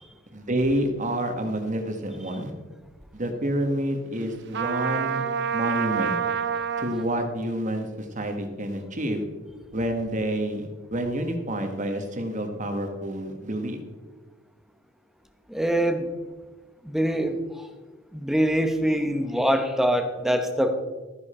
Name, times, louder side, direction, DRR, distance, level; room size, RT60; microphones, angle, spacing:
voice 1, 0.3-2.5 3.1-5.2 5.5-6.2 6.8-9.2 9.7-13.8, right 1 dB, 40° right, 5 dB, 1.5 m, -28 dB
Trumpet, 4.5-7.1, right 7 dB, 60° right, 0.6 m, -27 dB
voice 2, 15.5-16.1 16.8-17.7 18.1-20.7, equal, ahead, 7 dB, 1.0 m, -24 dB
13.5 x 10.0 x 4.4 m, 1.3 s
head